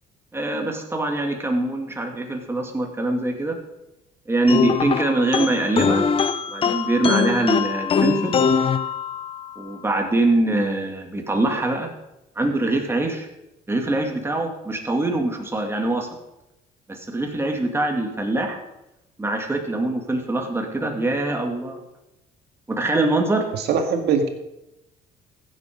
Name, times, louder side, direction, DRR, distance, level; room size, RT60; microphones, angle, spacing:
voice 1, 0.3-3.6 4.3-6.0 6.5-8.4 9.6-11.9 12.4-13.3 13.7-16.1 16.9-18.6 19.2-21.8 22.7-23.5, right 2 dB, 15° right, 2 dB, 2.3 m, -23 dB
sound 1, 4.5-9.5, left 6 dB, 35° left, 0.6 m, -22 dB
voice 2, 23.5-24.3, right 5 dB, 75° right, 5 dB, 2.0 m, -21 dB
15.5 x 7.6 x 5.2 m, 0.91 s
cardioid pair, 110°, 17 cm